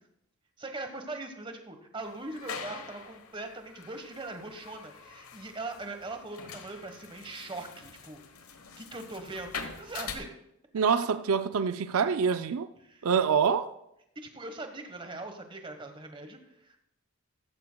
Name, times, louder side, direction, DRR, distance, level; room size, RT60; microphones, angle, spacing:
voice 1, 0.6-8.2 8.8-10.3 12.8-13.1 14.1-16.8, right 2 dB, 25° right, 1.2 m, -41 dB
sound 1, 2.0-10.2, left 6 dB, 85° left, 1.1 m, -44 dB
voice 2, 10.7-12.7 13.0-13.7, right 6 dB, 85° right, 0.4 m, -26 dB
14.5 x 13.5 x 2.3 m
head